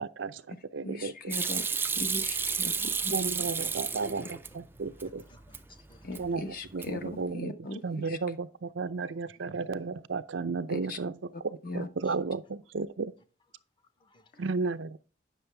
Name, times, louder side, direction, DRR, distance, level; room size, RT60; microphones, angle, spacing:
voice 1, 0.0-1.6 3.1-5.2 6.2-7.5 7.8-13.1 14.4-15.0, right 4 dB, 75° right, 0.6 m, -34 dB
voice 2, 0.8-1.7 2.0-3.1 6.0-8.2 10.7-11.0 11.6-11.9, left 2 dB, 50° left, 1.0 m, -38 dB
Hands / Sink (filling or washing), 1.3-4.5 4.9-5.6 5.9-6.4 6.7-7.2, right 5 dB, 10° right, 0.4 m, -31 dB
voice 3, 3.6-6.2 12.0-12.1 14.0-14.3, equal, 25° left, 0.9 m, -58 dB
9.5 x 6.4 x 3.4 m
head